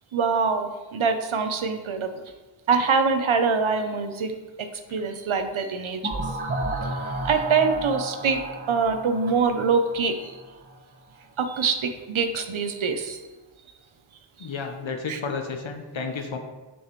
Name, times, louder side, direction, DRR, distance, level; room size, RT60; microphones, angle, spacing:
voice 1, 0.1-2.1 2.7-6.1 6.8-8.4 8.7-10.3 11.4-13.2 15.1-15.2, right 5 dB, 85° right, 7 dB, 0.7 m, -24 dB
sound 1, 6.0-10.7, right 1 dB, 20° right, 1.0 m, -32 dB
voice 2, 14.4-16.4, left 4 dB, 75° left, 4 dB, 0.8 m, -32 dB
6.4 x 6.2 x 3.1 m, 1.2 s
wide cardioid pair, 55°, 47 cm